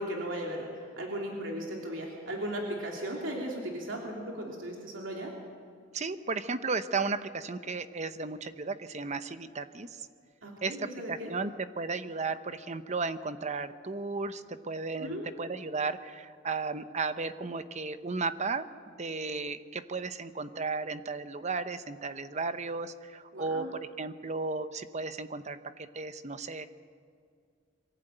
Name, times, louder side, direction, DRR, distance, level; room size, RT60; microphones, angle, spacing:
voice 1, 0.0-5.3 10.4-11.3 15.0-15.3 23.3-23.7, right 1 dB, 85° right, -1 dB, 3.1 m, -36 dB
voice 2, 5.9-10.1 10.6-26.6, right 4 dB, 35° right, 11 dB, 0.9 m, -34 dB
23.0 x 15.5 x 9.1 m, 2.2 s
head